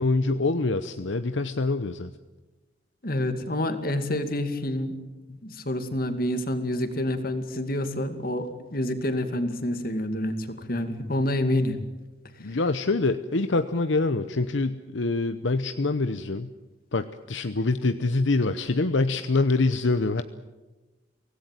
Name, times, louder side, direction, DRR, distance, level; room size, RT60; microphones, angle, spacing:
voice 1, 0.0-2.1 12.4-16.5 16.9-20.2, left 3 dB, 75° left, 10 dB, 0.8 m, -25 dB
voice 2, 3.0-4.9 5.3-11.8 12.4-12.6, left 1 dB, 50° left, 8 dB, 2.4 m, -28 dB
24.5 x 18.0 x 9.2 m, 1.2 s
head